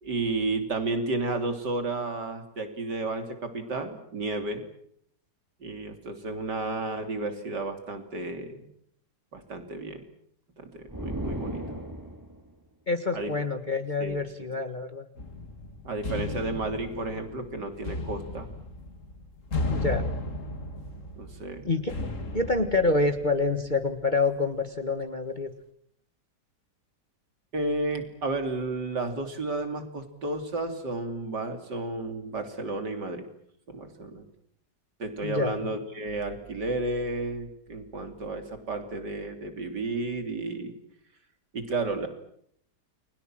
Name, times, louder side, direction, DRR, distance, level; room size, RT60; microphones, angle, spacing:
voice 1, 0.0-4.6 5.6-8.7 9.3-10.0 10.6-11.6 13.1-13.3 14.0-14.2 15.9-18.5 21.2-21.7 27.5-33.3 33.7-34.3 35.0-40.8 41.5-42.1, right 2 dB, 90° right, 7 dB, 3.7 m, -32 dB
sound 1, 10.9-12.5, right 1 dB, 10° right, 2.6 m, -35 dB
voice 2, 12.9-15.0 19.7-20.1 21.6-21.9 22.3-25.5 35.2-35.7, left 3 dB, 30° left, 7 dB, 1.6 m, -27 dB
sound 2, 15.2-23.8, left 2 dB, 50° left, 2.5 m, -35 dB
29.5 x 22.5 x 7.6 m, 0.69 s
omnidirectional pair, 1.8 m